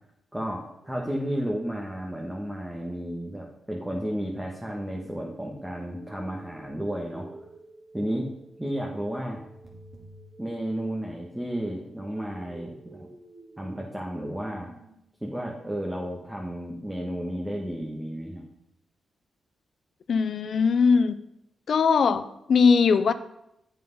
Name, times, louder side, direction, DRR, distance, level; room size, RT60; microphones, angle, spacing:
voice 1, 0.3-7.3 7.9-8.3 8.6-9.4 10.4-13.1 13.6-14.7 15.2-18.4, equal, 10° right, -1 dB, 1.5 m, -32 dB
sound 1, 4.9-14.9, right 2 dB, 50° right, 2.3 m, -49 dB
voice 2, 20.1-21.1 21.7-23.1, left 5 dB, 65° left, 12 dB, 0.6 m, -20 dB
7.6 x 5.8 x 5.5 m, 0.82 s
cardioid pair, 60°, 0 cm